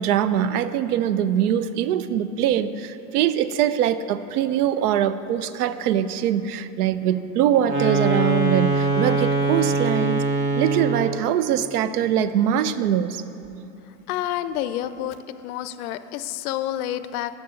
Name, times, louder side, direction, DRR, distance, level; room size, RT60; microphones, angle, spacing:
voice 1, 0.0-10.2 10.6-13.2, right 10 dB, 80° right, 13 dB, 0.6 m, -23 dB
sound 1, 7.6-11.2, right 3 dB, 20° right, 0.4 m, -22 dB
voice 2, 14.1-15.1 15.4-17.4, left 12 dB, 70° left, 13 dB, 0.5 m, -28 dB
14.0 x 6.1 x 3.8 m, 2.8 s
supercardioid pair, 155°, 45 cm